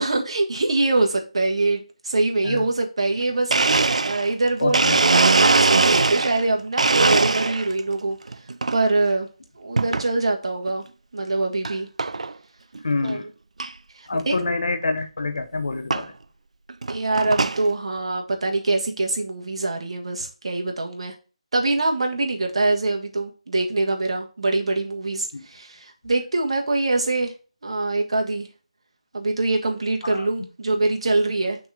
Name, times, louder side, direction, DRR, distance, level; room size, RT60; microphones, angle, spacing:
voice 1, 0.0-8.2 8.7-9.3 9.5-10.8 11.1-11.9 13.0-13.2 13.9-14.5 16.9-21.1 21.5-27.3 27.6-28.5 29.1-31.6, right 2 dB, 55° right, 1.5 m, -24 dB
Domestic sounds home sounds, 3.2-3.3 3.5-6.4 6.8-7.8 8.3-8.8 9.8-10.1 10.7-10.8 11.6-11.7 12.0-12.3 12.8-12.9 13.0-13.1 13.6-13.7 15.0-15.1 15.9-16.1 16.7-17.6, right 3 dB, 75° right, 0.4 m, -20 dB
voice 2, 4.6-5.0 12.8-13.3 14.1-16.1 25.3-25.4 30.0-30.3, left 3 dB, 60° left, 0.9 m, -27 dB
6.1 x 3.5 x 4.8 m
figure-of-eight pair, 170°, 4 cm